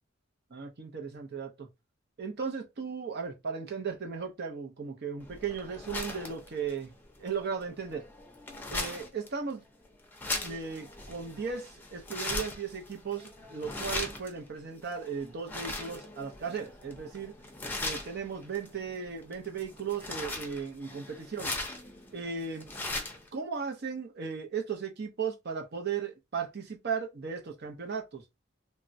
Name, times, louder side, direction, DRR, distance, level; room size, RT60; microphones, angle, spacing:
voice 1, 0.5-1.7 2.2-6.9 7.2-8.0 8.7-9.6 10.4-17.3 17.8-21.5 22.1-22.7 23.3-28.2, right 6 dB, 55° right, 0.6 m, -36 dB
sound 1, 5.2-23.3, left 2 dB, 10° left, 0.6 m, -40 dB
3.4 x 2.1 x 2.6 m
head